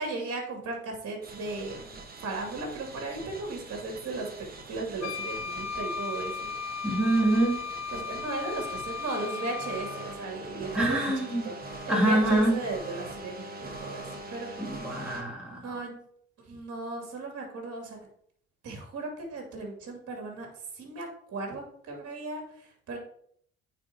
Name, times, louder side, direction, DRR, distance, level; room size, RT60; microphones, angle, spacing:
voice 1, 0.0-4.3 4.7-6.5 7.9-11.1 11.4-11.6 11.9-14.5 14.8-15.0 15.5-15.9 16.5-18.0 18.6-20.5 20.7-23.0, right 3 dB, 55° right, 1 dB, 2.3 m, -36 dB
sound 1, 1.2-15.2, right 2 dB, 30° right, 1.3 m, -43 dB
Wind instrument woodwind instrument, 5.0-10.2, left 5 dB, 65° left, 0.8 m, -36 dB
voice 2, 6.8-7.6 10.7-11.4 11.9-12.5 14.6-15.6, right 1 dB, 5° right, -4 dB, 2.4 m, -25 dB
9.2 x 4.3 x 2.8 m, 0.65 s
supercardioid pair, 70°, 30 cm